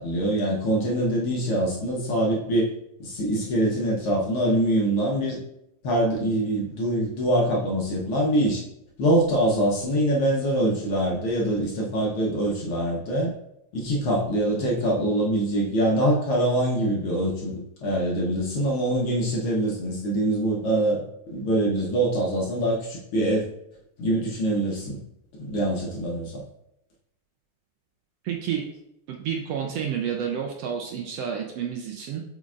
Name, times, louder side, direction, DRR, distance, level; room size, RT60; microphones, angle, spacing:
voice 1, 0.0-2.7 3.0-5.4 5.8-8.6 9.0-13.3 13.7-21.0 21.3-23.5 24.0-25.0 25.4-26.4, right 1 dB, 60° left, -3 dB, 1.6 m, -24 dB
voice 2, 28.2-28.6 29.1-32.2, right 8 dB, 75° right, 2 dB, 1.5 m, -30 dB
7.7 x 5.1 x 2.4 m, 0.81 s
omnidirectional pair, 3.3 m